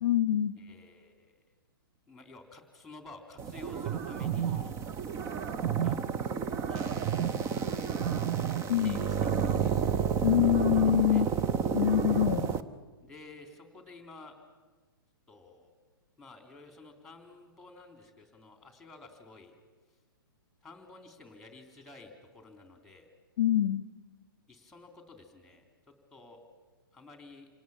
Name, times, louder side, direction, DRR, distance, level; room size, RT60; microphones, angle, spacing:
voice 1, 0.0-0.5 8.7-9.0 10.2-11.3 11.7-12.5 23.4-23.9, left 11 dB, 60° left, 18 dB, 0.7 m, -25 dB
voice 2, 0.6-1.3 2.1-5.0 5.8-6.2 6.7-8.3 8.8-9.3 9.6-9.9 10.7-10.8 11.1-11.2 13.0-14.3 15.3-15.7 16.2-19.5 20.6-23.1 24.5-25.6 26.1-26.4 26.9-27.5, left 3 dB, ahead, 5 dB, 3.6 m, -52 dB
sound 1, 3.4-12.6, right 7 dB, 25° right, 0.9 m, -30 dB
28.0 x 18.5 x 7.3 m, 1.3 s
figure-of-eight pair, 115°, 12 cm